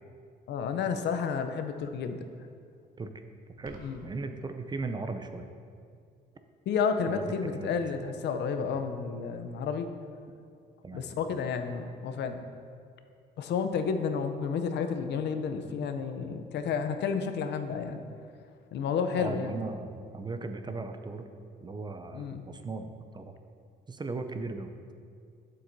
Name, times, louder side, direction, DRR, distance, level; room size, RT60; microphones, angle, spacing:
voice 1, 0.5-2.2 3.8-4.0 6.7-9.9 10.9-12.5 13.4-18.0 18.7-19.5 22.1-22.4, left 6 dB, 70° left, 8 dB, 0.6 m, -31 dB
voice 2, 3.6-5.5 7.1-7.7 10.8-11.1 19.2-21.3 21.6-23.3 23.9-24.7, right 3 dB, 25° right, 7 dB, 0.5 m, -37 dB
sound 1, 3.7-4.1, right 2 dB, 50° right, 1.1 m, -50 dB
8.6 x 7.7 x 2.7 m, 2.3 s
cardioid pair, 90°, 19 cm